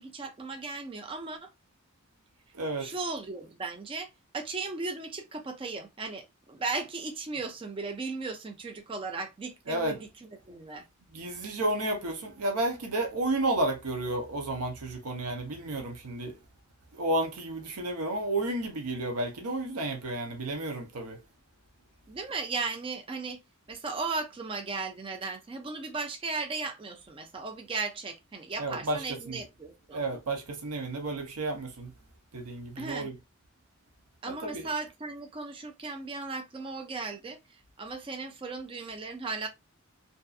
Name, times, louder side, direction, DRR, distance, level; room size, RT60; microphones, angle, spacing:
voice 1, 0.0-1.5 2.8-10.1 10.5-10.8 22.1-23.4 23.7-30.0 32.8-33.1 34.2-39.5, right 4 dB, 25° right, 0.3 m, -36 dB
voice 2, 2.5-2.9 9.7-10.0 11.1-16.4 16.9-21.2 28.6-29.4 29.9-31.9 32.3-33.2 34.3-34.7, right 2 dB, 85° right, 0.7 m, -32 dB
2.5 x 2.4 x 2.3 m
head